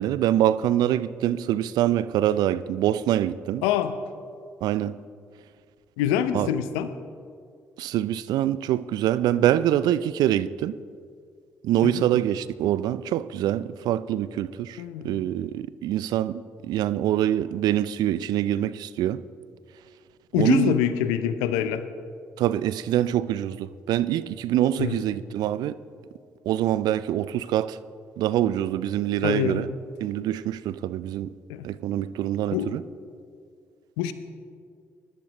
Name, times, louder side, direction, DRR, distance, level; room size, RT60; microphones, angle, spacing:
voice 1, 0.0-3.6 4.6-5.0 6.3-6.5 7.8-10.8 11.6-19.2 20.4-20.7 22.4-25.7 26.5-27.8 28.2-29.7 30.0-31.3 31.6-32.8, right 12 dB, 65° right, 0.4 m, -25 dB
voice 2, 3.6-3.9 6.0-6.9 11.8-12.0 14.8-15.2 20.3-21.8 24.8-25.0 29.2-29.6 31.5-31.6 32.5-32.7 34.0-34.1, left 10 dB, 80° left, 0.7 m, -25 dB
21.0 x 11.5 x 3.0 m
hypercardioid pair, 45°, 7 cm